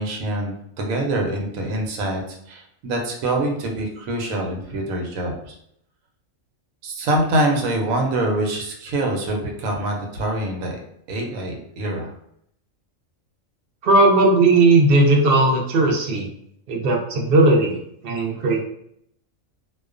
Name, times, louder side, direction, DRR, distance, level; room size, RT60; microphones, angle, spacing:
voice 1, 0.0-5.5 6.8-10.8 11.1-12.1, right 1 dB, 90° right, 1 dB, 1.0 m, -25 dB
voice 2, 13.8-16.3 16.7-17.8 18.0-18.6, right 2 dB, 60° right, -1 dB, 0.6 m, -17 dB
2.3 x 2.2 x 2.4 m, 0.71 s
omnidirectional pair, 1.4 m